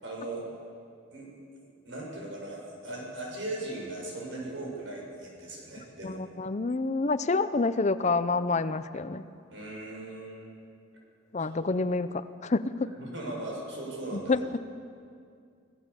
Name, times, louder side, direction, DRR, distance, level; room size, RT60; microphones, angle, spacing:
voice 1, 0.0-0.4 1.1-6.2 9.5-10.5 11.5-11.7 13.0-14.5, right 2 dB, 85° right, -2 dB, 7.0 m, -39 dB
voice 2, 6.0-9.2 11.3-12.9 14.1-14.6, left 3 dB, 40° left, 13 dB, 0.6 m, -28 dB
26.0 x 17.0 x 7.1 m, 2.4 s
head